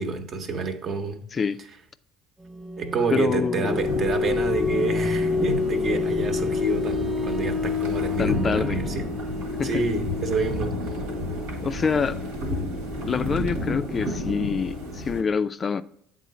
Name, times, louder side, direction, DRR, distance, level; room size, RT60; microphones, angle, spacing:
voice 1, 0.0-1.2 2.8-9.0 9.6-10.8, right 4 dB, 45° right, 1.0 m, -28 dB
voice 2, 1.3-1.6 3.1-3.8 8.2-8.8 9.6-9.8 11.6-12.2 13.1-15.8, left 6 dB, 35° left, 0.3 m, -26 dB
sound 1, 2.4-14.9, left 4 dB, 10° right, 0.7 m, -30 dB
sound 2, 3.7-15.2, left 1 dB, 80° right, 1.6 m, -32 dB
8.2 x 3.8 x 4.1 m
hypercardioid pair, 70°, 0 cm